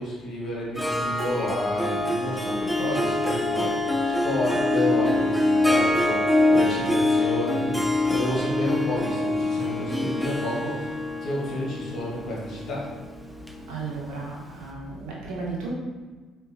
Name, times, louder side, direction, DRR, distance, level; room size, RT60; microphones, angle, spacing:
voice 1, 0.0-3.8 4.0-10.9 11.2-12.9, left 1 dB, 55° left, -5 dB, 1.3 m, -30 dB
Harp, 0.8-14.3, left 2 dB, ahead, 0.5 m, -25 dB
voice 2, 13.7-15.7, right 4 dB, 80° right, -3 dB, 0.9 m, -34 dB
4.8 x 2.6 x 2.6 m, 1.3 s
supercardioid pair, 70°, 0 cm